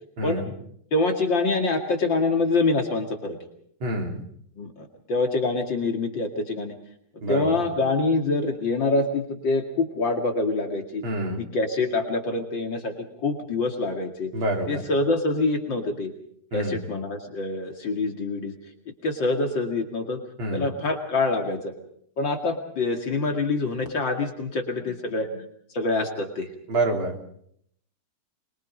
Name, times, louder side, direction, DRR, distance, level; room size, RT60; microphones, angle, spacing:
voice 1, 0.2-0.5 3.8-4.2 7.2-7.6 11.0-11.4 14.3-14.8 16.5-16.8 20.4-20.7 26.7-27.2, right 1 dB, 70° right, 2 dB, 4.3 m, -27 dB
voice 2, 0.9-3.4 4.6-6.8 7.3-11.0 11.4-14.3 14.7-16.1 16.5-18.7 19.0-20.2 20.5-21.7 22.2-25.5 25.7-26.5, left 3 dB, 60° left, 4 dB, 2.9 m, -25 dB
25.0 x 23.0 x 5.1 m, 0.67 s
omnidirectional pair, 2.3 m